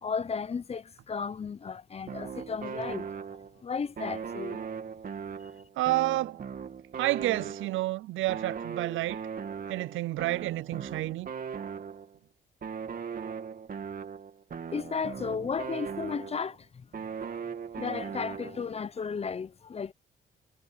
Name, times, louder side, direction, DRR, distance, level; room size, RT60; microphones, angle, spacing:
voice 1, 0.0-3.1 3.6-4.6 14.7-16.9 17.8-19.9, left 5 dB, 30° left, 0.7 m, -34 dB
sound 1, 2.1-3.6 4.0-7.9 8.3-12.2 12.6-16.6 16.9-18.8, right 6 dB, 45° right, 2.8 m, -39 dB
voice 2, 5.8-6.4 7.0-9.2 9.7-11.3, right 17 dB, 80° right, 0.5 m, -30 dB
cardioid pair, 90°, 20 cm